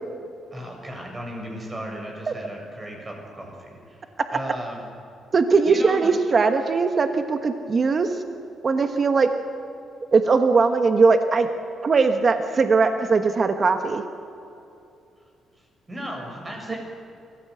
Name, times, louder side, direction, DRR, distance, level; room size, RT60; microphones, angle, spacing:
voice 1, 0.5-4.0 4.3-4.8 5.6-6.1 15.9-16.8, right 1 dB, 25° right, 1 dB, 6.7 m, -35 dB
voice 2, 5.3-8.2 8.6-9.3 10.1-11.5 11.8-14.0 16.7-16.8, right 4 dB, 40° right, 7 dB, 1.3 m, -20 dB
23.5 x 15.5 x 8.1 m, 2.7 s
cardioid pair, 90°, 0 cm